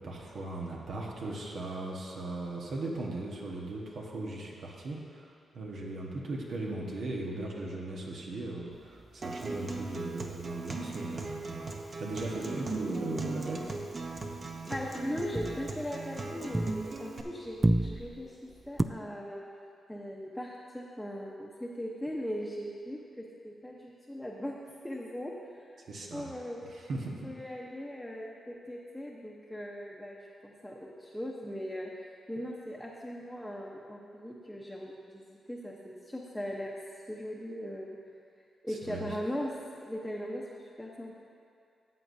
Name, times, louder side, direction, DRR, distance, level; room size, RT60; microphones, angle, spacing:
voice 1, 0.0-11.7 12.0-13.7 25.9-26.3 26.7-27.2 38.7-39.2, right 2 dB, 70° right, -2 dB, 1.2 m, -38 dB
sound 1, 8.7-12.4 12.7-13.0 13.3-17.2 17.4-18.8, right 1 dB, 20° right, 0.3 m, -34 dB
Acoustic guitar, 9.2-17.2, right 3 dB, 40° right, 0.8 m, -39 dB
voice 2, 14.7-19.4 19.9-24.5 24.8-25.8 26.1-26.6 27.2-36.7 37.1-38.0 38.6-39.5 39.8-40.4 40.8-41.2, equal, 5° left, -4 dB, 0.9 m, -39 dB
13.5 x 7.8 x 2.7 m, 2.5 s
cardioid pair, 90°, 0 cm